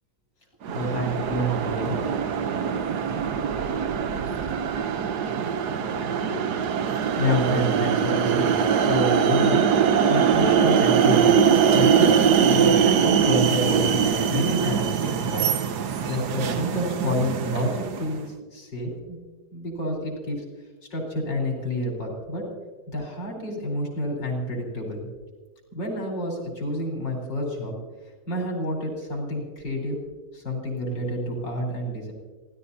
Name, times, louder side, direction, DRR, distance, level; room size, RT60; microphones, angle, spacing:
sound 1, 0.6-18.1, right 7 dB, 70° right, 1.4 m, -22 dB
voice 1, 0.7-2.0 7.2-11.3 11.6-15.5 16.1-18.3 18.5-19.2 19.5-20.4 20.9-22.4 22.9-25.1 25.7-27.7 28.3-30.0 30.3-32.1, left 1 dB, 90° left, 0 dB, 5.2 m, -28 dB
voice 2, 3.2-4.7 4.9-6.6 8.4-8.5, left 1 dB, 10° right, -2 dB, 3.0 m, -41 dB
27.0 x 16.5 x 2.8 m, 1.3 s
omnidirectional pair, 1.9 m